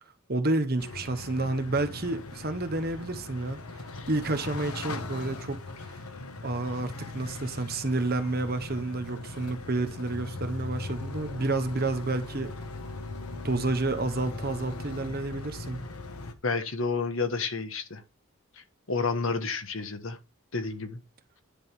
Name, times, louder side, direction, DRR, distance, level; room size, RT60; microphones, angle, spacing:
voice 1, 0.3-6.0 6.4-12.5 13.3-15.9, right 2 dB, 45° right, 1.0 m, -30 dB
sound 1, 0.8-16.3, left 2 dB, 85° left, 1.2 m, -39 dB
voice 2, 16.4-18.0 18.9-20.2 20.5-21.0, left 4 dB, 65° left, 1.3 m, -30 dB
10.5 x 3.6 x 5.9 m
head